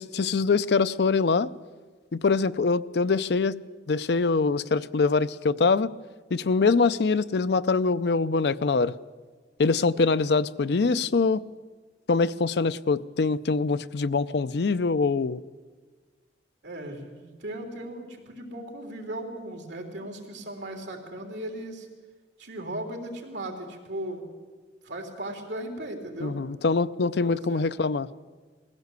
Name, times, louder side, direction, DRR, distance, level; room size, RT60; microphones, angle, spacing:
voice 1, 0.0-1.5 2.1-3.6 3.9-5.9 6.3-8.9 9.6-11.4 12.1-15.4 26.2-28.1, left 4 dB, 65° left, 15 dB, 0.5 m, -24 dB
voice 2, 16.6-21.9 22.4-24.3 24.8-26.4 27.2-27.6, right 1 dB, 80° right, 3 dB, 3.5 m, -37 dB
20.0 x 16.0 x 8.1 m, 1.4 s
head